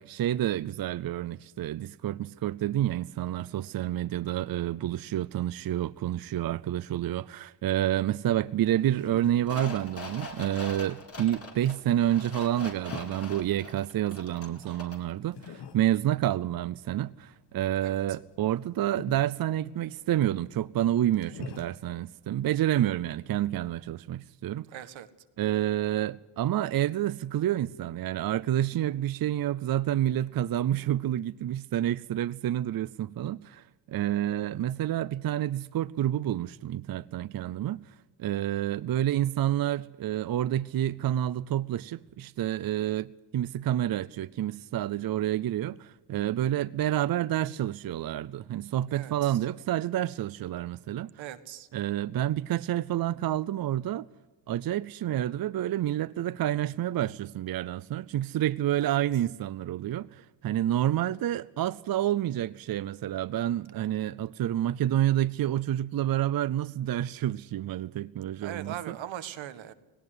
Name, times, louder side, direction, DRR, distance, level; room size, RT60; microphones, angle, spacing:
voice 1, 0.0-24.9 25.4-51.2 51.7-54.1 54.5-69.0, right 12 dB, 50° right, 0.6 m, -29 dB
sound 1, 8.0-23.9, left 7 dB, 60° left, 1.9 m, -50 dB
sound 2, 9.5-15.1 15.4-15.5, left 2 dB, 30° left, 3.9 m, -42 dB
voice 2, 24.7-25.1 48.9-49.1 51.2-51.7 58.8-58.9 63.7-63.9 68.4-69.7, right 11 dB, 85° right, 1.6 m, -40 dB
19.5 x 18.0 x 7.9 m
cardioid pair, 115°, 45 cm